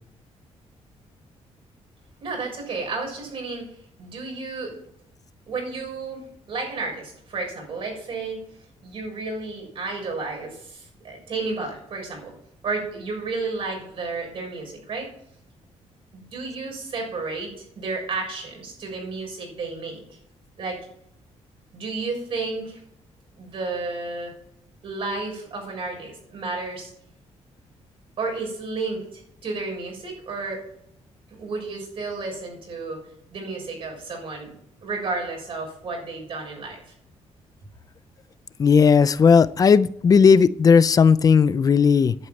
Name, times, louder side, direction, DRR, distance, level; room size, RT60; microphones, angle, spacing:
voice 1, 2.2-4.8 5.5-8.4 8.8-12.3 12.6-15.1 16.1-20.2 20.6-20.8 21.7-22.8 23.4-24.4 24.8-26.9 28.2-30.6 31.4-33.0 33.3-34.5 34.8-36.8, right 3 dB, 50° right, 1 dB, 6.9 m, -32 dB
voice 2, 38.6-42.1, left 6 dB, 30° left, 15 dB, 0.5 m, -16 dB
11.0 x 8.6 x 9.1 m, 0.72 s
cardioid pair, 165°, 12 cm